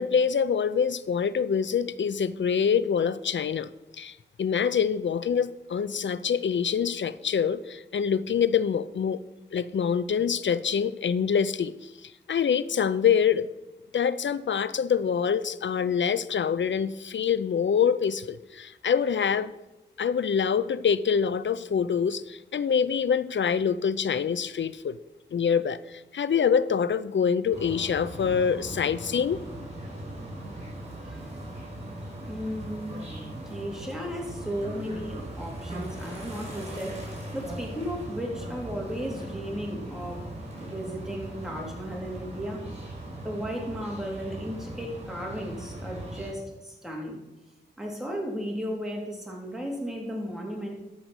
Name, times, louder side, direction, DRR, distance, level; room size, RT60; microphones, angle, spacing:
voice 1, 0.0-3.7 4.0-4.1 4.4-9.2 9.5-11.7 12.3-13.5 13.9-19.5 20.0-25.0 25.3-29.4, left 7 dB, 75° left, 16 dB, 0.5 m, -25 dB
sound 1, 27.5-46.3, right 1 dB, 35° right, 4.7 m, -39 dB
voice 2, 32.2-40.2 40.6-42.6 43.2-47.2 47.8-50.7, equal, ahead, -1 dB, 3.5 m, -35 dB
13.0 x 5.3 x 6.2 m, 0.98 s
cardioid pair, 45°, 19 cm